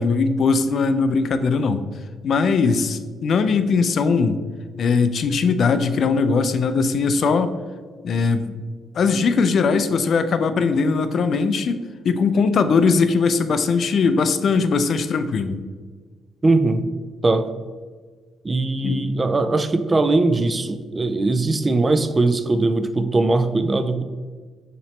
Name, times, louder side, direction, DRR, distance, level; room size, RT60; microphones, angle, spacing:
voice 1, 0.0-1.8 2.2-4.4 4.8-7.5 8.0-8.5 9.0-15.6 18.8-19.0, left 4 dB, 60° left, 10 dB, 0.4 m, -20 dB
voice 2, 16.4-16.8 17.2-17.5 18.4-24.0, right 2 dB, 25° right, 9 dB, 0.3 m, -20 dB
5.7 x 3.0 x 3.1 m, 1.5 s
cardioid pair, 90°, 0 cm